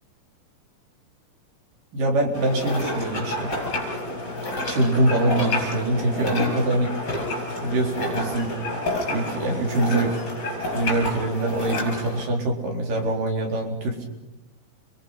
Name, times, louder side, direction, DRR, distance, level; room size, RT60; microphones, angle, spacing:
voice 1, 1.9-3.5 4.7-6.9 7.6-8.5 9.1-10.2 10.7-14.1, right 1 dB, 85° right, 0 dB, 5.7 m, -24 dB
sound 1, 2.3-12.2, left 1 dB, 30° left, 7.1 m, -29 dB
30.0 x 23.0 x 5.9 m, 1.0 s
omnidirectional pair, 3.7 m